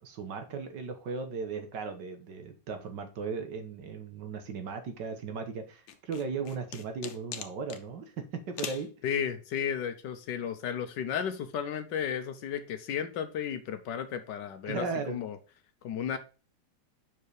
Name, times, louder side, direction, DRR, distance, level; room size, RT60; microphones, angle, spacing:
voice 1, 0.0-8.9 14.7-15.2, right 5 dB, 65° right, 1.7 m, -37 dB
sound 1, 5.9-7.8 8.6-8.9, left 9 dB, 90° left, 1.5 m, -40 dB
voice 2, 9.0-15.4 15.8-16.2, left 8 dB, 70° left, 1.3 m, -33 dB
5.6 x 4.8 x 4.8 m
omnidirectional pair, 2.0 m